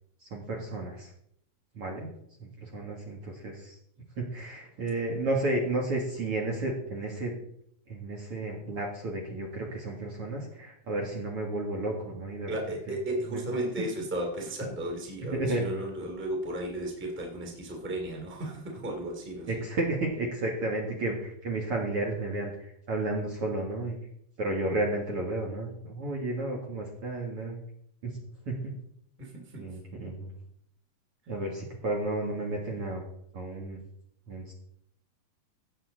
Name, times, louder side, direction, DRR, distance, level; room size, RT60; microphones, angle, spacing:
voice 1, 0.2-1.1 1.7-2.1 2.4-3.8 4.2-7.3 7.9-13.0 13.3-13.4 15.2-15.6 19.5-24.0 24.4-27.6 28.0-28.1 28.5-28.7 29.6-30.3 31.3-33.0 33.3-33.8 34.3-34.5, right 2 dB, 45° right, -1 dB, 2.2 m, -32 dB
voice 2, 12.5-19.6 29.2-29.6, right 1 dB, 5° right, 0 dB, 1.6 m, -34 dB
16.0 x 7.5 x 3.9 m, 0.71 s
omnidirectional pair, 4.3 m